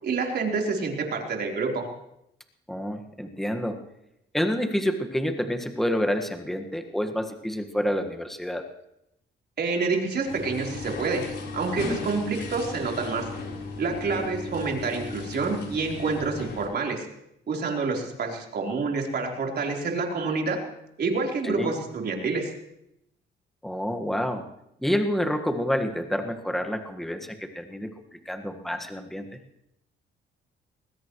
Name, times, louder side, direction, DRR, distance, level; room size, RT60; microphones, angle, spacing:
voice 1, 0.0-1.8 9.6-11.3 11.5-13.2 13.8-17.1 17.5-20.6 21.0-22.5, right 4 dB, 55° right, 0 dB, 3.9 m, -28 dB
voice 2, 2.7-3.8 4.3-8.6 21.4-21.7 23.6-24.5 24.8-27.9 28.2-29.4, equal, ahead, 5 dB, 1.6 m, -28 dB
sound 1, 10.3-16.7, left 3 dB, 60° left, 4.1 m, -36 dB
21.0 x 20.0 x 3.2 m, 0.82 s
cardioid pair, 90°, 20 cm